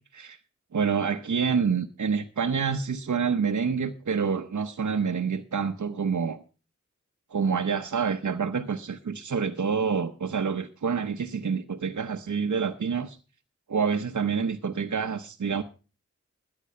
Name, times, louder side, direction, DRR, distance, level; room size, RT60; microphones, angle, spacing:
voice 1, 0.7-6.4 7.3-13.2 13.7-15.6, right 6 dB, 75° right, 0.9 m, -27 dB
13.5 x 9.9 x 5.4 m
wide cardioid pair, 50°, 29 cm